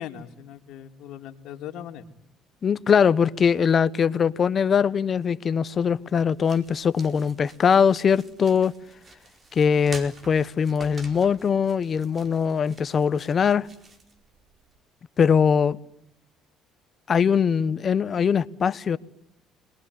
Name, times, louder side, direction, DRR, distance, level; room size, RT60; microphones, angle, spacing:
voice 1, 0.0-2.1, left 10 dB, 70° left, 2.5 m, -39 dB
voice 2, 2.6-8.7 9.5-13.7 15.2-15.8 17.1-19.0, left 7 dB, 45° left, 1.1 m, -21 dB
sound 1, 5.8-14.8, right 3 dB, 35° right, 4.5 m, -48 dB
27.5 x 21.0 x 9.6 m
supercardioid pair, 80°, 0 cm